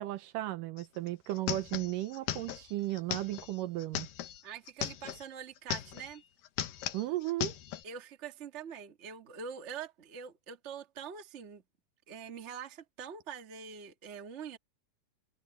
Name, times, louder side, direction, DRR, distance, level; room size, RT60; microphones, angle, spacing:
voice 1, 0.0-4.1 6.9-7.6, right 16 dB, 75° right, 2.3 m, -35 dB
sound 1, 0.8-0.9 1.1-5.2 5.6-6.2 6.4-7.8, left 12 dB, 75° left, 2.8 m, -38 dB
voice 2, 4.4-6.2 7.8-11.6 12.1-14.6, right 7 dB, 35° right, 1.2 m, -44 dB
omnidirectional pair, 4.0 m